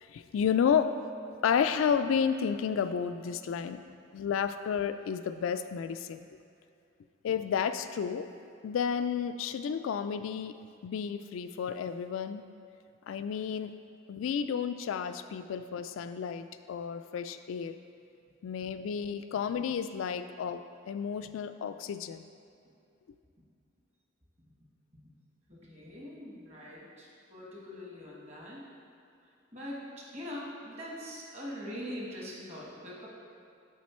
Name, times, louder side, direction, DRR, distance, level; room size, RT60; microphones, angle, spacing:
voice 1, 0.1-0.9 1.4-3.8 4.1-6.3 7.2-8.2 8.6-10.5 10.8-12.4 13.1-13.7 14.1-17.7 18.4-20.6 20.9-22.2, left 7 dB, 85° left, 10 dB, 0.3 m, -31 dB
voice 2, 25.5-28.7 29.5-33.1, equal, 35° right, -4 dB, 1.3 m, -42 dB
7.4 x 4.2 x 4.3 m, 2.6 s
head